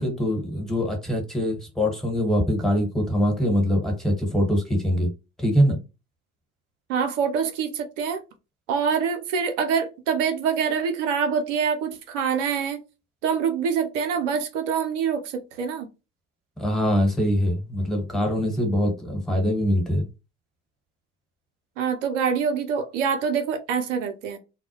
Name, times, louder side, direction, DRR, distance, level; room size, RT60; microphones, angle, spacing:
voice 1, 0.0-5.1 5.4-5.8 16.6-20.1, equal, ahead, 1.2 m, -23 dB
voice 2, 6.9-8.2 8.7-12.8 13.2-15.9 21.8-24.4, right 6 dB, 80° right, 0.6 m, -25 dB
2.3 x 2.0 x 2.8 m
hypercardioid pair, 55°, 36 cm